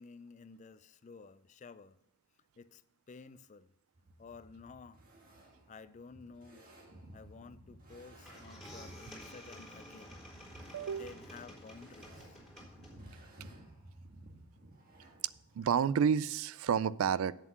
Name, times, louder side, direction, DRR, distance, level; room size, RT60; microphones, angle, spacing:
voice 1, 0.0-2.0 2.6-2.8 3.1-3.7 4.2-5.0 5.4-6.7 7.1-10.2 11.0-12.4, left 4 dB, 35° left, 0.3 m, -53 dB
sound 1, 4.0-15.6, right 1 dB, 40° right, 1.7 m, -56 dB
sound 2, 7.9-8.0 8.2-13.2, left 1 dB, 5° left, 3.5 m, -52 dB
voice 2, 10.7-11.1 15.6-17.3, right 7 dB, 70° right, 0.3 m, -30 dB
8.2 x 7.4 x 5.9 m
head